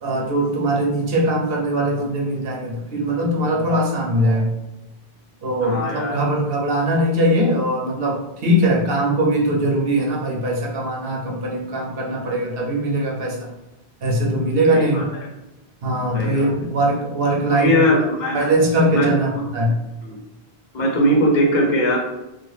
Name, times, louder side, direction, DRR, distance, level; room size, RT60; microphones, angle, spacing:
voice 1, 0.0-4.5 5.4-13.5 14.0-15.1 15.8-17.9 18.3-19.7, right 1 dB, 70° right, -1 dB, 0.9 m, -21 dB
voice 2, 5.6-6.2 14.7-15.3 16.1-16.5 17.5-18.5 18.9-19.1 20.0-20.2 20.7-22.0, equal, 50° left, -2 dB, 0.8 m, -20 dB
2.9 x 2.3 x 3.1 m, 0.95 s
omnidirectional pair, 1.0 m